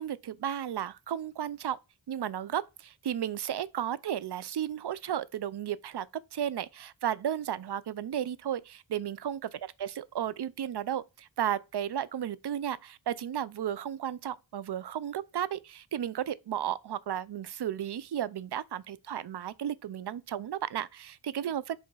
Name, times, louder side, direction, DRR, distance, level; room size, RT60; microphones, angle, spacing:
voice 1, 0.0-1.8 2.1-9.5 9.8-21.8, right 10 dB, 65° right, 0.6 m, -34 dB
5.4 x 3.5 x 5.5 m
wide cardioid pair, 75°, 44 cm